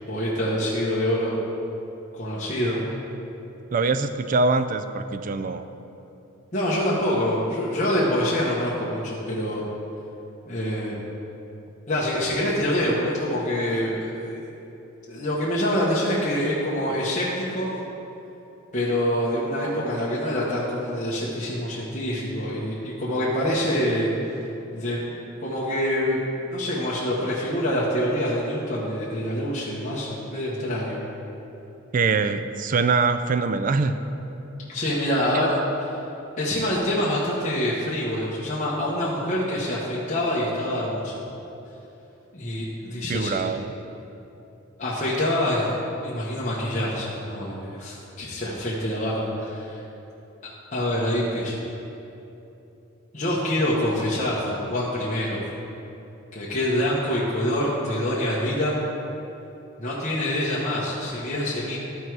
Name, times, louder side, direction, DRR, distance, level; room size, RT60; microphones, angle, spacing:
voice 1, 0.1-1.4 2.1-2.8 6.5-9.6 10.5-10.9 11.9-14.5 15.1-17.7 18.7-24.1 24.7-25.1 25.4-26.2 26.5-31.0 34.7-36.0 36.4-41.1 42.3-43.4 44.8-45.7 46.0-49.8 50.7-51.5 53.1-55.4 56.3-58.8 59.8-61.8, left 1 dB, 35° left, -7 dB, 1.0 m, -26 dB
voice 2, 3.7-5.7 31.9-34.0 35.3-35.7 43.1-43.7, right 4 dB, 40° right, 10 dB, 0.3 m, -23 dB
12.5 x 4.6 x 4.7 m, 3.0 s
head